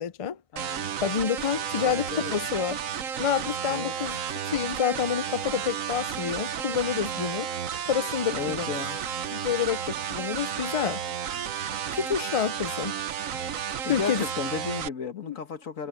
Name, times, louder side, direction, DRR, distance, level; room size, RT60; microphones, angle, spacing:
voice 1, 0.0-0.4 1.0-2.8 3.2-4.2 4.4-7.5 7.9-8.7 9.3-11.0 11.9-13.0 13.9-14.2 15.3-15.4, left 8 dB, 50° left, 0.4 m, -28 dB
voice 2, 0.5-0.9 1.8-2.3 3.7-4.0 8.3-9.0 13.8-15.9, left 5 dB, 85° left, 2.0 m, -34 dB
sound 1, 0.6-14.9, right 8 dB, 85° right, 1.4 m, -32 dB
omnidirectional pair, 1.3 m